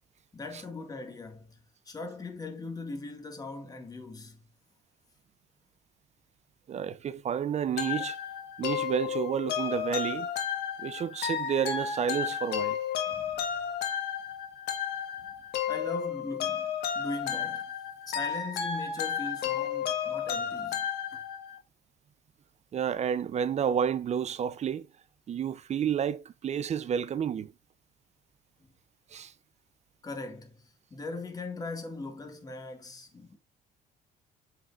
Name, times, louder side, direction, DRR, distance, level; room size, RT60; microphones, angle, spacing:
voice 1, 0.3-1.6 1.9-4.4 13.1-13.5 15.2-15.3 15.7-17.7 18.1-21.2 30.0-33.4, left 3 dB, 20° left, 2.0 m, -40 dB
voice 2, 6.7-8.2 8.6-10.3 10.8-12.8 22.7-24.9 25.3-27.5 29.1-29.3, right 8 dB, 40° right, 0.6 m, -30 dB
sound 1, 7.8-21.6, left 8 dB, 75° left, 1.6 m, -33 dB
7.2 x 5.7 x 2.5 m
cardioid pair, 110°, 17 cm